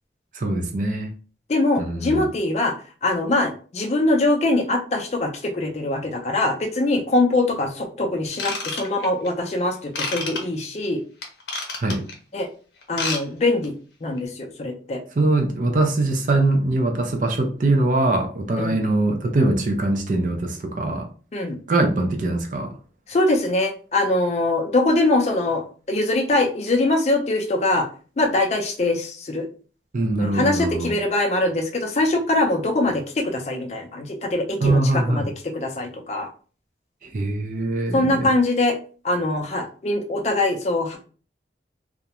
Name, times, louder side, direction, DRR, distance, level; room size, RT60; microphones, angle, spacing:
voice 1, 0.3-1.1 1.8-2.3 11.8-12.1 15.2-21.1 21.7-22.8 29.9-30.9 34.6-35.3 37.0-38.3, right 2 dB, 45° right, 0.4 m, -22 dB
voice 2, 1.5-2.7 3.0-11.0 12.3-12.5 12.9-13.7 14.0-15.0 18.6-18.8 21.3-21.6 23.1-27.9 28.2-29.5 30.2-36.3 37.9-38.8 39.0-41.0, left 2 dB, 40° left, 0.4 m, -22 dB
Ratchet pawl / Tools, 8.3-9.3 9.9-10.4 11.2-12.1 12.8-13.2 13.5-13.7 14.2-14.3, left 3 dB, 80° left, 0.7 m, -28 dB
2.3 x 2.1 x 2.8 m
head